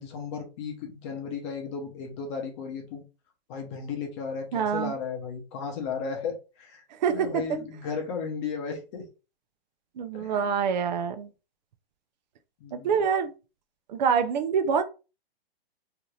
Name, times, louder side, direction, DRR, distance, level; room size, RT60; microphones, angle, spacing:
voice 1, 0.0-3.0 3.5-6.8 7.1-9.0 10.1-10.6 12.6-13.0, left 5 dB, 30° left, 0.8 m, -35 dB
voice 2, 4.5-4.9 6.9-7.6 10.0-11.3 12.7-13.3 13.9-14.8, right 6 dB, 45° right, 0.5 m, -26 dB
2.8 x 2.5 x 3.1 m
hypercardioid pair, 160°, 31 cm